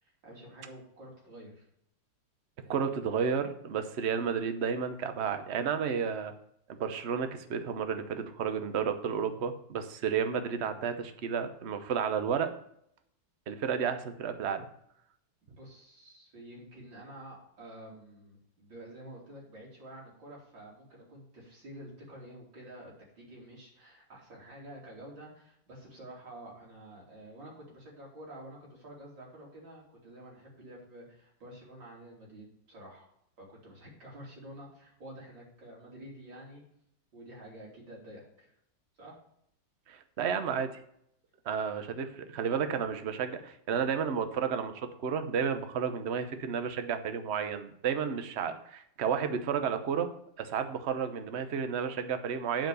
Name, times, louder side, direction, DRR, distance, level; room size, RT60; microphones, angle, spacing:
voice 1, 0.0-1.7 2.6-2.9 15.4-33.1 33.4-36.6 37.1-38.5 39.0-39.2, right 1 dB, 80° right, -3 dB, 3.9 m, -49 dB
voice 2, 2.7-6.3 6.8-12.5 13.5-14.7 39.9-40.7 41.4-44.7 45.0-50.1 50.4-52.7, right 7 dB, 50° right, 9 dB, 0.9 m, -32 dB
9.1 x 5.0 x 6.9 m, 0.73 s
omnidirectional pair, 2.0 m